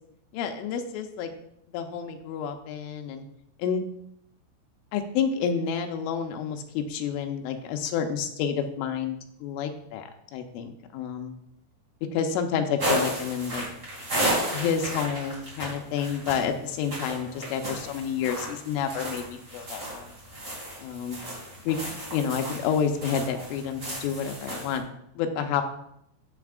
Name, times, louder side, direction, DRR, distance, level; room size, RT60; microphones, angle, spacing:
voice 1, 0.3-1.3 1.7-3.2 3.6-3.8 4.9-10.0 10.3-11.3 12.1-13.6 14.5-20.1 20.8-21.2 21.7-21.8 22.1-24.9 25.2-25.6, left 7 dB, 80° left, 5 dB, 3.2 m, -29 dB
sound 1, 12.8-24.8, right 1 dB, 20° right, 3.3 m, -33 dB
13.0 x 7.9 x 2.5 m, 0.75 s
omnidirectional pair, 5.9 m